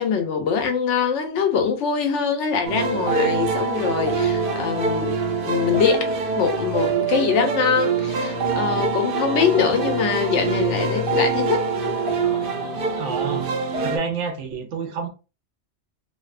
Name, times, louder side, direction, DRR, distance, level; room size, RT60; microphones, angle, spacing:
voice 1, 0.0-5.2 5.5-6.0 6.3-11.7, left 6 dB, 90° left, 1.0 m, -23 dB
sound 1, 2.7-14.0, right 4 dB, 60° right, 0.7 m, -24 dB
voice 2, 13.0-13.5 13.8-15.1, right 5 dB, 85° right, 1.0 m, -28 dB
2.7 x 2.1 x 2.3 m
omnidirectional pair, 1.2 m